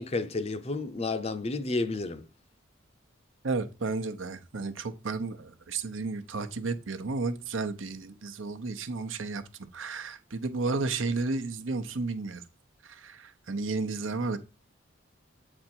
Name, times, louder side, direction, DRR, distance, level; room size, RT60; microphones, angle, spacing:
voice 1, 0.0-2.3, left 3 dB, 30° left, 0.6 m, -31 dB
voice 2, 3.4-12.4 12.8-14.4, right 3 dB, 75° right, 0.9 m, -33 dB
7.8 x 4.4 x 4.5 m
head